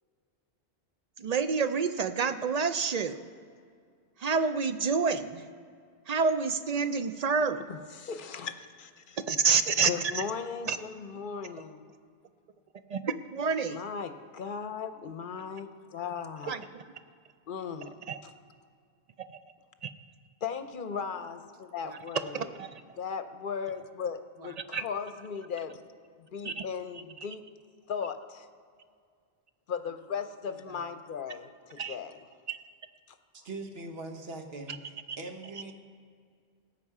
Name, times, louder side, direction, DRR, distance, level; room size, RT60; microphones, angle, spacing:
voice 1, 1.2-3.2 4.2-5.5 6.1-7.6 9.3-10.2 10.7-10.8 12.9-13.8 16.5-16.8 18.1-18.2 19.3-19.4 19.8-19.9 21.9-22.0 22.3-22.8 24.7-24.8 26.4-26.7 30.7-30.8 31.8-32.0 32.5-32.6 35.1-35.2, right 5 dB, 50° right, 10 dB, 0.5 m, -28 dB
voice 2, 7.7-9.2 9.8-11.9 13.7-16.6 17.5-18.1 20.4-22.5 22.9-25.8 26.2-27.4 27.9-28.5 29.7-32.2 33.1-33.2, left 6 dB, 60° left, 9 dB, 0.8 m, -37 dB
voice 3, 33.4-35.7, right 2 dB, 75° right, 4 dB, 1.4 m, -41 dB
17.5 x 8.1 x 4.8 m, 2.1 s
omnidirectional pair, 1.0 m